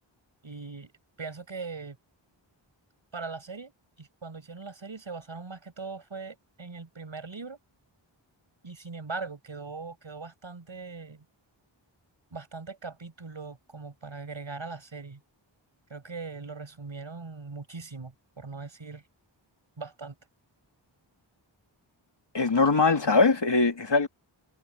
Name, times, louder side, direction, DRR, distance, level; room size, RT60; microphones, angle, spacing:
voice 1, 0.4-0.9 1.2-2.0 3.1-3.7 4.0-7.6 8.6-11.3 12.3-15.2 15.9-19.0 19.8-20.2, right 4 dB, 75° right, 7.0 m, -40 dB
voice 2, 22.3-24.1, left 3 dB, 60° left, 3.4 m, -22 dB
wide cardioid pair, 60°, 47 cm